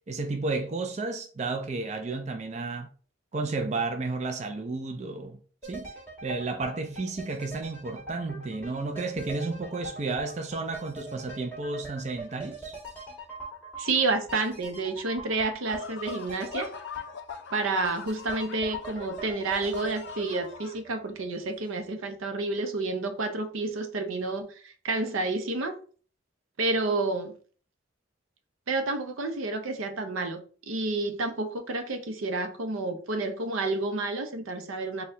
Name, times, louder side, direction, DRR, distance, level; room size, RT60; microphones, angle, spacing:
voice 1, 0.1-2.9 3.3-5.9 6.2-12.8, right 3 dB, 35° right, 0.4 m, -32 dB
sound 1, 5.6-21.6 21.9-22.0, right 1 dB, 10° left, 1.4 m, -42 dB
voice 2, 13.8-16.7 17.5-25.8 26.6-27.4 28.7-35.0, right 3 dB, 85° right, 0.6 m, -30 dB
sound 2, 15.7-20.8, left 6 dB, 60° left, 0.3 m, -43 dB
4.3 x 2.2 x 3.7 m
head